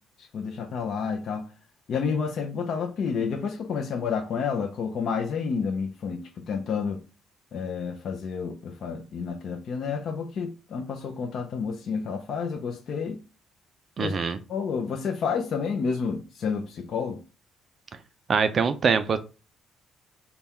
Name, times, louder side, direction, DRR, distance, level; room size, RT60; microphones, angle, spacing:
voice 1, 0.2-1.5 1.9-7.0 7.5-13.2 14.0-14.1 14.5-17.2, left 5 dB, 45° left, 0.6 m, -30 dB
voice 2, 14.0-14.4 18.3-19.2, right 5 dB, 30° right, 0.4 m, -23 dB
5.3 x 2.3 x 4.2 m
cardioid pair, 170°, 0 cm